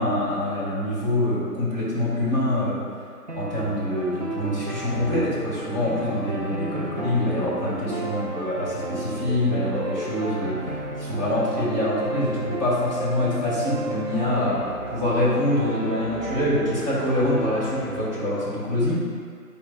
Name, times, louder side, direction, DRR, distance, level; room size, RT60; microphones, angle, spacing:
voice 1, 0.0-2.8 3.3-14.6 14.9-18.9, left 1 dB, 25° right, -11 dB, 1.5 m, -25 dB
sound 1, 3.3-18.1, right 2 dB, 50° right, 0.5 m, -33 dB
8.3 x 5.2 x 2.3 m, 2.1 s
hypercardioid pair, 180°, 48 cm